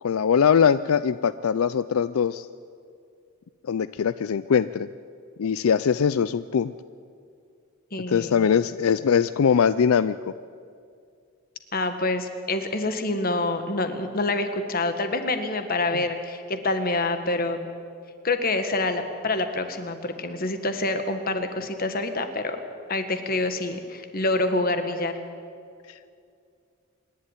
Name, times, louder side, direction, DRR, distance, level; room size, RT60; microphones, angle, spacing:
voice 1, 0.0-2.5 3.7-4.9 5.4-6.7 8.1-10.2 15.9-16.0 25.9-26.1, left 7 dB, 80° left, 15 dB, 0.4 m, -22 dB
voice 2, 7.9-8.5 11.7-17.7 18.2-22.6 22.9-25.1, left 2 dB, 45° left, 8 dB, 1.6 m, -27 dB
26.0 x 11.5 x 9.9 m, 2.3 s
head